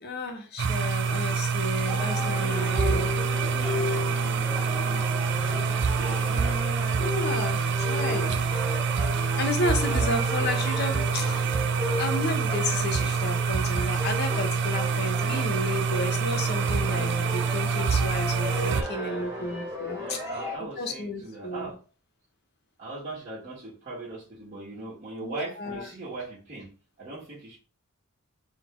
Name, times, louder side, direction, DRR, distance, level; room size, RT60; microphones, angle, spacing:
voice 1, 0.0-3.1 7.0-7.6 7.9-8.4 9.4-11.5 12.0-20.2 20.8-21.7 25.2-25.8, left 2 dB, 45° left, 4 dB, 0.9 m, -32 dB
sound 1, 0.6-18.8, right 5 dB, 55° right, 0.4 m, -26 dB
sound 2, 1.9-20.6, left 1 dB, 10° right, 1.0 m, -35 dB
voice 2, 2.3-6.6 18.5-19.7 20.0-21.8 22.8-26.7 27.0-27.6, right 2 dB, 35° right, -10 dB, 1.6 m, -40 dB
3.9 x 2.7 x 3.6 m, 0.35 s
head